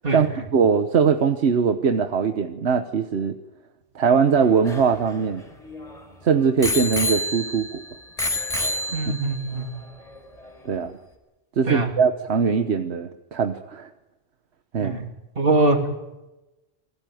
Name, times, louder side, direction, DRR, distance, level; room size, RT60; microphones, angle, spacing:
voice 1, 0.1-3.4 3.9-5.4 6.2-7.8 9.1-9.2 10.6-11.0 11.6-13.9 14.7-15.0, right 6 dB, 80° right, 8 dB, 1.3 m, -21 dB
Bicycle bell, 4.3-6.0 6.6-7.8 8.2-9.4 10.2-10.3, left 1 dB, 35° left, 4.7 m, -28 dB
voice 2, 8.9-9.7 11.7-11.9 14.8-15.0 15.4-15.8, right 2 dB, 60° right, 4 dB, 3.3 m, -22 dB
29.0 x 19.5 x 9.2 m, 1.0 s
omnidirectional pair, 1.1 m